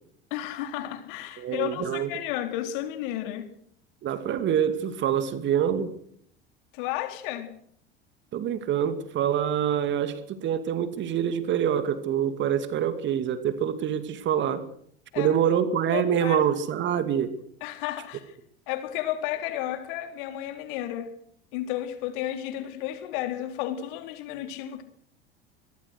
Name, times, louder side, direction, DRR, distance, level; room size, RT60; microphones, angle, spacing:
voice 1, 0.3-3.5 6.7-7.5 15.1-15.3 15.9-16.4 17.6-18.3 18.7-21.1 21.5-24.8, left 12 dB, 55° left, 3.8 m, -32 dB
voice 2, 1.4-2.1 4.0-5.9 8.3-14.6 15.2-17.4, right 9 dB, 35° right, 2.5 m, -26 dB
24.5 x 21.5 x 6.5 m
figure-of-eight pair, 75°, 31 cm